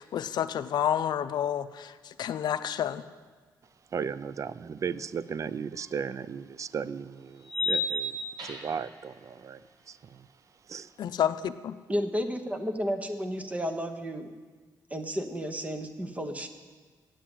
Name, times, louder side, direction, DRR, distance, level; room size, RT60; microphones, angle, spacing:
voice 1, 0.0-3.0 11.0-11.8, left 9 dB, 70° left, 0.5 m, -29 dB
voice 2, 3.9-8.2 8.4-10.3 10.7-10.9, right 6 dB, 45° right, 0.4 m, -36 dB
sound 1, 5.8-5.9 7.4-8.9, left 2 dB, 80° right, 2.2 m, -31 dB
voice 3, 11.9-14.3 14.9-16.5, equal, 20° right, 1.1 m, -32 dB
8.6 x 7.4 x 8.8 m
cardioid pair, 90°, 7 cm